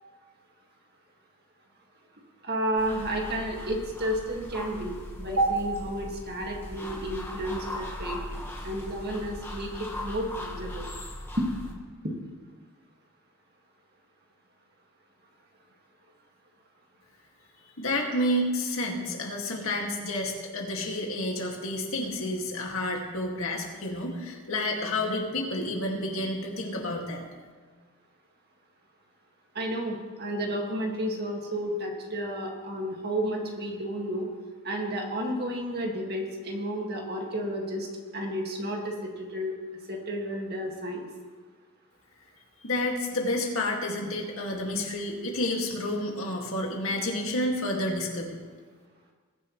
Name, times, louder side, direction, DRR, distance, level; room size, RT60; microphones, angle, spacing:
voice 1, 2.4-8.2 8.6-10.9 11.4-11.5 29.6-34.3 34.6-37.9 38.1-39.5 39.9-41.0, right 1 dB, 45° right, 0 dB, 2.1 m, -31 dB
sound 1, 2.8-11.7, left 1 dB, 10° left, 1.5 m, -39 dB
voice 2, 17.8-27.2 42.6-48.4, left 1 dB, 65° left, 0 dB, 2.2 m, -30 dB
21.0 x 10.0 x 3.2 m, 1.5 s
head